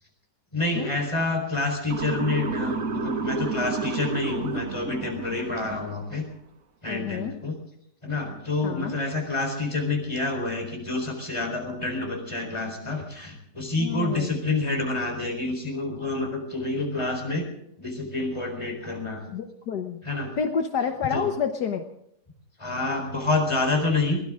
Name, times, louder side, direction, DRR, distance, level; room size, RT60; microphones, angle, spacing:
voice 1, 0.5-6.3 6.8-7.5 8.0-17.5 17.8-19.2 20.0-20.3 21.1-21.3 22.6-24.2, left 2 dB, 15° left, 2 dB, 4.4 m, -28 dB
Motor vehicle (road) / Siren, 1.9-6.0, right 4 dB, 55° right, 1.6 m, -31 dB
voice 2, 6.9-7.3 8.6-9.0 13.8-14.4 19.3-20.0 20.4-21.8, left 7 dB, 70° left, 5 dB, 1.6 m, -29 dB
22.0 x 17.0 x 3.8 m, 0.75 s
omnidirectional pair, 1.8 m